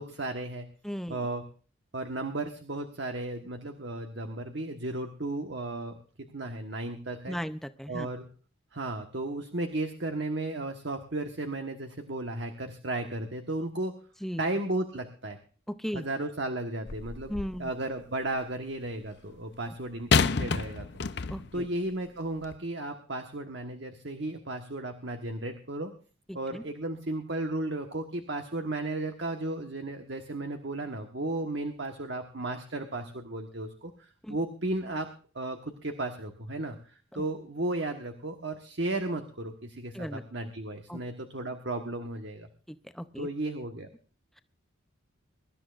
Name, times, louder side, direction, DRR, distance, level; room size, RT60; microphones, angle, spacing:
voice 1, 0.0-0.7 1.1-1.4 1.9-6.0 6.3-7.4 7.9-8.2 8.7-13.9 14.4-15.4 15.9-17.3 17.6-20.9 21.5-25.9 26.3-35.1 35.3-36.8 37.1-42.5 43.2-43.9, right 2 dB, 60° right, 5 dB, 1.4 m, -34 dB
voice 2, 0.8-1.2 7.3-8.1 14.2-14.4 15.7-16.1 17.3-17.7 21.3-21.7 26.3-26.6 34.2-34.4 37.1-37.2 39.9-40.2 40.9-41.0 42.7-43.3, equal, ahead, 10 dB, 0.6 m, -36 dB
sound 1, 16.9-17.7 20.1-21.6 22.4-22.6, left 5 dB, 55° left, 0.6 m, -28 dB
24.0 x 13.0 x 2.5 m, 0.38 s
head